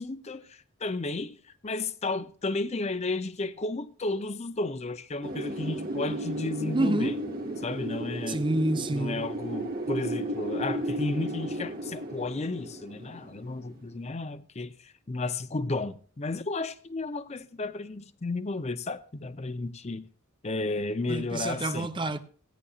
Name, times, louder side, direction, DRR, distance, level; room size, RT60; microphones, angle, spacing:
voice 1, 0.0-1.4 1.6-7.2 7.6-8.4 8.9-20.0 20.4-21.9, left 2 dB, 30° left, 0.6 m, -33 dB
Wind, 5.2-13.9, right 1 dB, 45° right, 1.8 m, -34 dB
voice 2, 6.7-7.2 8.3-9.2 21.1-22.2, right 1 dB, 25° right, 0.7 m, -28 dB
17.0 x 9.9 x 2.4 m
head